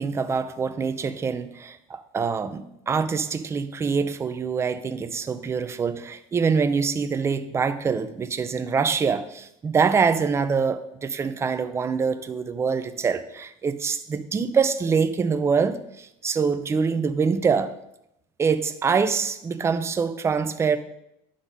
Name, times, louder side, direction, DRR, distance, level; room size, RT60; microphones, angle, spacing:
voice 1, 0.0-17.7 18.4-20.8, right 5 dB, 20° right, 9 dB, 0.5 m, -25 dB
10.0 x 3.8 x 5.3 m, 0.79 s
cardioid pair, 135°, 13 cm